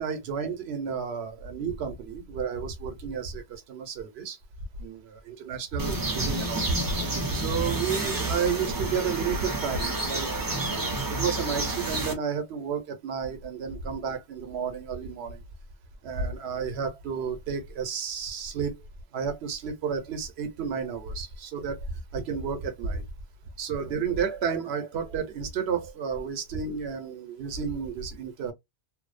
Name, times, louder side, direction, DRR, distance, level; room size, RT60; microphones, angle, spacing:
voice 1, 0.0-4.4 4.8-6.7 7.3-10.3 11.0-15.4 16.0-18.7 19.1-21.9 22.1-23.0 23.6-28.5, right 6 dB, 90° right, 0.9 m, -31 dB
sound 1, 5.8-12.1, right 2 dB, 25° right, 0.5 m, -30 dB
2.6 x 2.0 x 2.3 m
omnidirectional pair, 1.0 m